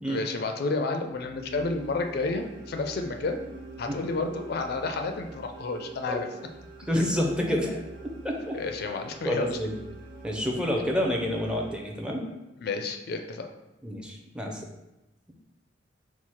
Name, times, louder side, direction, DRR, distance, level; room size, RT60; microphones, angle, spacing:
voice 1, 0.1-3.4 3.8-6.3 8.5-9.6 12.6-13.5, left 3 dB, 55° left, 5 dB, 0.4 m, -30 dB
sound 1, 1.1-12.4, right 3 dB, 75° right, 1.2 m, -46 dB
voice 2, 6.9-7.8 8.2-8.6 9.2-9.7 10.2-12.3 13.8-14.6, equal, 5° right, 0 dB, 0.4 m, -28 dB
4.5 x 2.0 x 4.3 m, 0.97 s
head